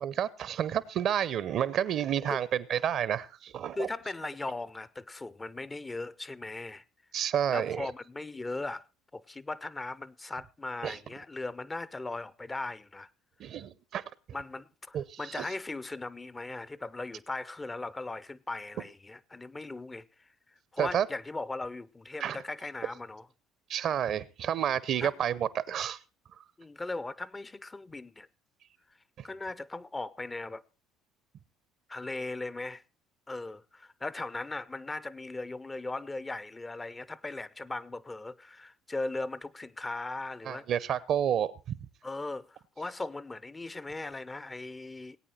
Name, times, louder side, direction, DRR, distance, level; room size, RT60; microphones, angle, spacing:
voice 1, 0.0-3.9 7.1-7.9 10.8-11.0 13.4-14.0 14.9-15.5 20.8-21.1 22.2-22.4 23.7-26.0 40.4-41.5, right 9 dB, 55° right, 0.8 m, -30 dB
voice 2, 3.7-6.8 7.5-8.8 9.1-13.1 14.3-20.1 20.7-23.2 25.0-25.1 26.6-28.3 29.2-30.6 31.9-32.8 33.3-40.7 42.0-45.2, left 2 dB, 20° left, 0.6 m, -38 dB
20.0 x 8.8 x 4.2 m
hypercardioid pair, 55°, 0 cm